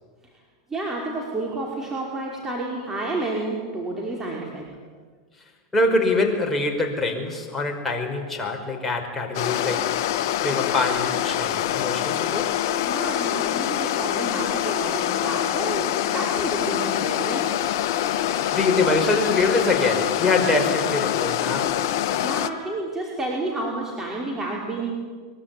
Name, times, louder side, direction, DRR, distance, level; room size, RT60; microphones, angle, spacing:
voice 1, 0.7-4.7 12.8-17.5 22.1-24.9, right 2 dB, 15° right, -2 dB, 5.7 m, -30 dB
voice 2, 5.7-9.9 10.4-12.6 18.2-21.8, left 2 dB, 15° left, 2 dB, 5.5 m, -24 dB
sound 1, 9.3-22.5, left 11 dB, 60° left, 1.3 m, -25 dB
24.0 x 23.5 x 9.7 m, 1.5 s
hypercardioid pair, 105°, 2 cm